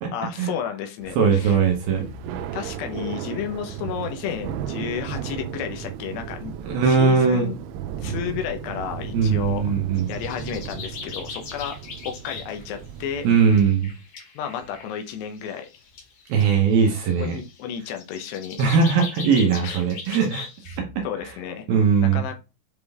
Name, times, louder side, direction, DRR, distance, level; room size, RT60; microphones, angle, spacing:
voice 1, 0.1-1.6 2.5-6.5 6.8-7.6 8.0-9.6 10.1-11.8 12.0-13.3 14.4-15.7 17.2-18.6 19.6-19.8 21.0-21.7 22.0-22.3, left 8 dB, 75° left, 5 dB, 2.8 m, -32 dB
Thunder / Rain, 1.0-13.9, right 8 dB, 85° right, 3.0 m, -35 dB
voice 2, 1.2-2.1 6.7-7.5 9.1-10.1 13.2-13.9 16.3-17.4 18.6-20.5 20.8-21.3 21.7-22.2, right 6 dB, 70° right, 2 dB, 2.5 m, -20 dB
sound 1, 10.0-12.6 13.1-20.8, left 5 dB, 55° left, 3.0 m, -40 dB
7.9 x 3.8 x 3.6 m, 0.29 s
omnidirectional pair, 5.1 m